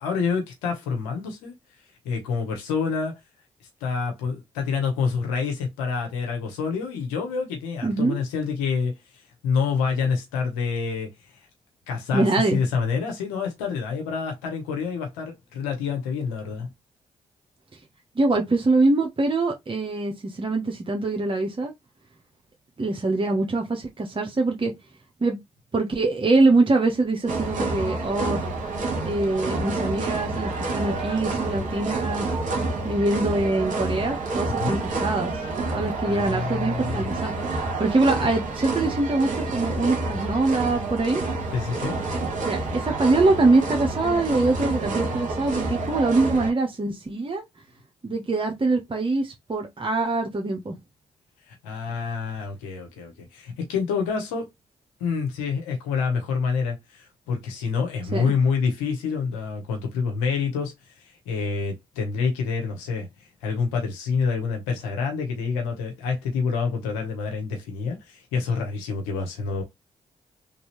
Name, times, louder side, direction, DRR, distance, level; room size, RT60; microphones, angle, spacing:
voice 1, 0.0-1.5 2.0-3.2 3.8-8.9 9.4-11.1 11.9-16.7 34.5-34.8 36.1-37.2 41.5-42.0 51.5-54.5 55.0-60.7 61.3-63.1 63.4-69.6, left 5 dB, 90° left, 0.8 m, -27 dB
voice 2, 7.8-8.2 12.1-12.6 18.2-21.7 22.8-24.7 25.2-25.4 25.7-28.4 29.0-32.3 32.8-35.3 35.7-41.2 42.5-47.4 48.0-50.7 58.1-58.3, right 3 dB, 35° right, 1.1 m, -23 dB
sound 1, 27.3-46.5, right 3 dB, 55° right, 1.3 m, -28 dB
3.3 x 2.7 x 3.1 m
hypercardioid pair, 40°, 15 cm